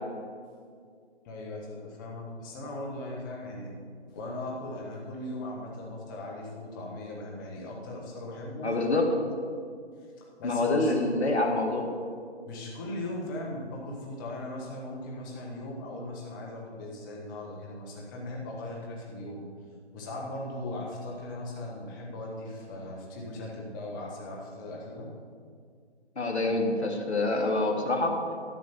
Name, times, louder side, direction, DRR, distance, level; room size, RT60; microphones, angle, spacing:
voice 1, 1.2-3.7 4.1-8.7 10.4-11.0 12.4-19.4 19.9-25.1, left 1 dB, 20° left, -2 dB, 1.5 m, -38 dB
voice 2, 8.6-9.2 10.4-11.9 26.2-28.2, left 2 dB, 70° left, 2 dB, 1.9 m, -26 dB
12.5 x 6.0 x 6.8 m, 2.2 s
figure-of-eight pair, 150°, 34 cm